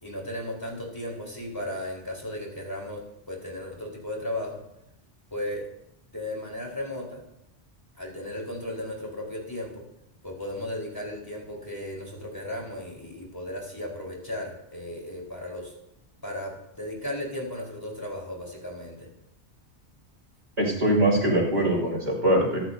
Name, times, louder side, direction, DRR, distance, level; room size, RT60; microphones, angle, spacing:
voice 1, 0.0-3.0 3.3-4.6 5.3-5.7 6.1-7.2 8.0-9.8 10.2-15.7 16.2-19.1, left 1 dB, 20° left, -2 dB, 4.4 m, -35 dB
voice 2, 20.6-22.6, right 1 dB, 80° right, -3 dB, 5.6 m, -22 dB
25.0 x 12.0 x 2.8 m, 0.82 s
omnidirectional pair, 1.1 m